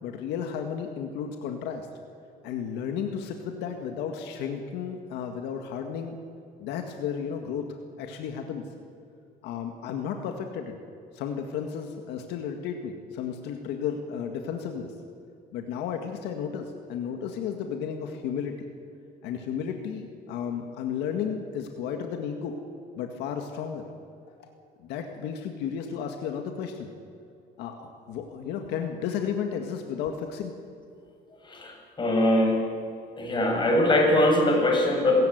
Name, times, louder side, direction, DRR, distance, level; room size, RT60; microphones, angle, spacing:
voice 1, 0.0-1.9 2.4-6.2 6.6-7.7 8.0-8.6 9.4-10.8 11.1-14.9 15.5-18.7 19.2-22.5 23.0-23.9 24.8-26.9 27.6-30.5, left 7 dB, 90° left, 4 dB, 2.0 m, -33 dB
voice 2, 31.4-32.7 33.2-35.3, left 1 dB, 25° left, 1 dB, 7.0 m, -22 dB
25.0 x 15.0 x 9.4 m, 2.5 s
cardioid pair, 110°, 17 cm